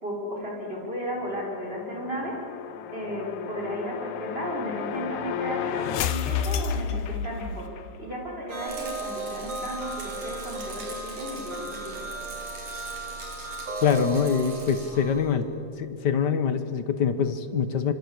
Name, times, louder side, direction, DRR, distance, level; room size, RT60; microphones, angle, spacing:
voice 1, 0.0-2.4 2.9-7.7 8.0-11.9, equal, 20° right, -2 dB, 5.6 m, -34 dB
sound 1, 1.1-7.9, left 8 dB, 85° left, 2.4 m, -32 dB
sound 2, 8.5-15.3, right 2 dB, 40° right, 3.9 m, -36 dB
Rattle, 8.7-14.9, right 5 dB, 75° right, 5.6 m, -42 dB
voice 2, 13.8-15.5 15.8-17.9, left 7 dB, 55° left, 10 dB, 1.2 m, -24 dB
26.0 x 25.5 x 8.2 m, 2.7 s
omnidirectional pair, 3.4 m